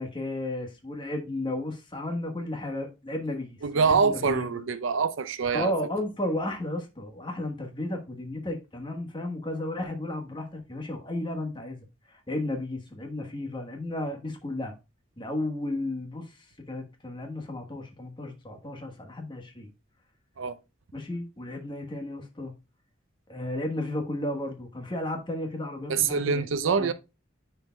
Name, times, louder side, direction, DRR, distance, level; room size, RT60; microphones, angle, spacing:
voice 1, 0.0-4.6 5.5-14.7 15.2-19.7 20.9-22.5 23.3-26.9, left 1 dB, 25° left, 1.3 m, -33 dB
voice 2, 3.6-5.7 20.4-20.6 25.9-26.9, right 5 dB, 80° right, 0.5 m, -25 dB
9.6 x 4.6 x 2.2 m
head